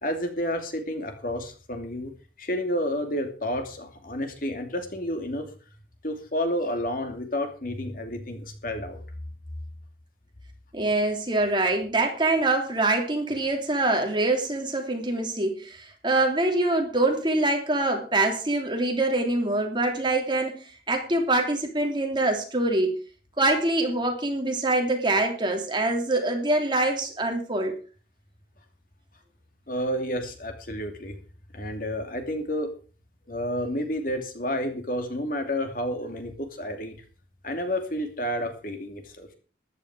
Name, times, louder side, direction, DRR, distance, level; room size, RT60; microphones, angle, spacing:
voice 1, 0.0-2.1 2.4-5.5 6.0-9.0 29.7-31.2 31.5-32.7 33.3-37.0 37.4-39.3, equal, 50° left, 6 dB, 2.7 m, -30 dB
voice 2, 10.7-23.0 23.4-27.8, right 2 dB, 25° right, 3 dB, 3.2 m, -24 dB
14.0 x 11.5 x 4.9 m, 0.38 s
head